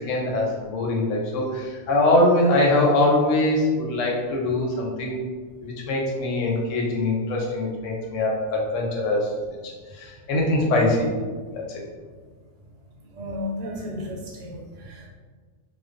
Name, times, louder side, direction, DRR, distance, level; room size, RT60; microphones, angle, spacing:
voice 1, 0.0-5.2 5.6-9.3 9.6-11.1 11.5-11.8, left 2 dB, 85° left, -1 dB, 0.9 m, -23 dB
voice 2, 13.1-15.1, left 1 dB, 85° right, -2 dB, 1.0 m, -33 dB
2.4 x 2.1 x 2.4 m, 1.5 s
omnidirectional pair, 1.3 m